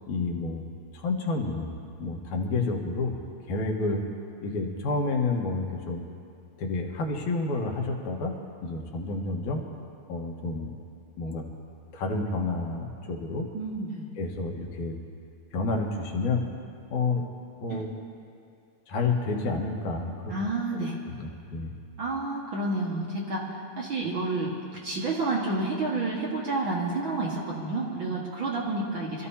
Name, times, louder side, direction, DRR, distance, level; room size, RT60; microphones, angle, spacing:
voice 1, 0.1-0.7 0.9-1.7 2.0-3.2 3.5-4.0 4.4-6.0 6.6-8.4 8.6-9.6 10.1-10.7 11.2-11.4 11.9-13.5 14.2-15.0 15.5-16.5 16.9-17.2 17.6-17.9 18.9-20.3 20.7-21.7, left 3 dB, 75° left, 1 dB, 2.7 m, -29 dB
voice 2, 13.5-14.1 17.7-17.8 20.3-21.0 22.0-24.5 24.8-29.3, right 2 dB, 45° right, -4 dB, 2.0 m, -30 dB
26.0 x 14.0 x 2.8 m, 2.5 s
omnidirectional pair, 3.6 m